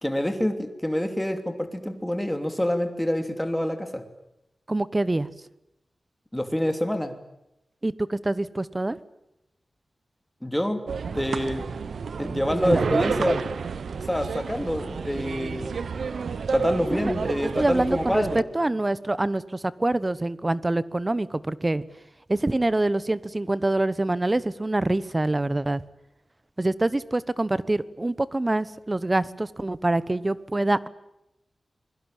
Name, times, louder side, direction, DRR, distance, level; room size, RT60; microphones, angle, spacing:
voice 1, 0.0-4.0 6.3-7.1 10.4-10.8 11.1-11.7 12.2-13.5 14.1-15.7 16.5-18.4, equal, 5° left, 7 dB, 3.0 m, -26 dB
voice 2, 4.7-5.3 7.8-9.0 12.6-12.8 17.6-21.8 22.3-25.8 26.6-30.9, right 2 dB, 20° right, 17 dB, 1.0 m, -25 dB
sound 1, 10.9-18.4, right 5 dB, 85° right, 1.1 m, -30 dB
27.0 x 22.5 x 9.1 m, 0.87 s
wide cardioid pair, 135°, 0 cm